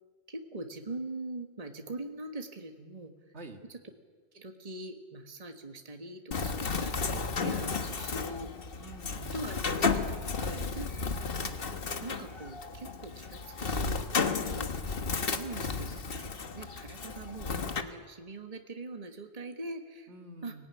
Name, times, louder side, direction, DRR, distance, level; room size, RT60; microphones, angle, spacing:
voice 1, 0.3-3.1 3.7-3.8 4.3-8.5 9.3-10.4 10.7-11.6 12.0-14.1 14.4-14.7 15.2-16.3 16.5-20.1 20.4-20.5, right 2 dB, 35° right, 5 dB, 1.7 m, -42 dB
Bird, 6.3-17.8, left 4 dB, 55° left, 1.5 m, -33 dB
voice 2, 8.8-9.5 10.4-10.7 20.1-20.7, right 2 dB, 70° right, 5 dB, 2.2 m, -46 dB
24.0 x 18.5 x 9.9 m, 1.5 s
omnidirectional pair, 1.2 m